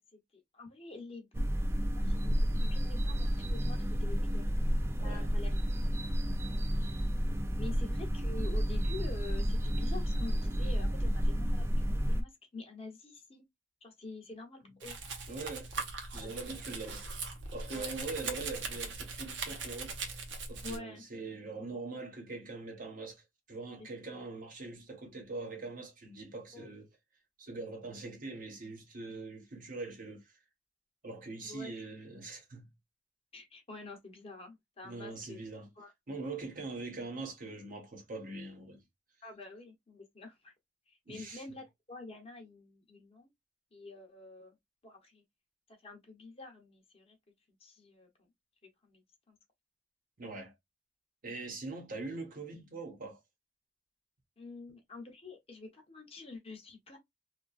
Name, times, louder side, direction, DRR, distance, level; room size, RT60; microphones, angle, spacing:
voice 1, 0.0-4.4 5.0-5.6 6.5-6.6 7.6-13.4 13.8-15.0 16.2-16.6 17.7-17.9 20.6-21.1 23.8-23.9 26.5-26.7 31.4-31.7 33.3-35.4 35.8-35.9 39.2-40.5 40.9-43.3 43.7-44.6 44.8-45.2 45.7-47.2 47.6-48.3 48.8-49.4 54.4-57.0, left 3 dB, 35° left, 0.8 m, -48 dB
sound 1, 1.3-12.2, equal, 15° right, 0.3 m, -31 dB
voice 2, 5.0-5.3 15.3-15.7 16.1-17.0 17.5-20.0 20.5-26.9 27.4-30.3 31.0-32.7 34.8-35.7 36.1-38.8 41.1-41.4 50.2-50.5 51.2-53.2, right 3 dB, 50° right, 1.1 m, -42 dB
Domestic sounds home sounds, 14.8-20.8, right 4 dB, 80° right, 0.8 m, -40 dB
2.8 x 2.4 x 2.4 m
head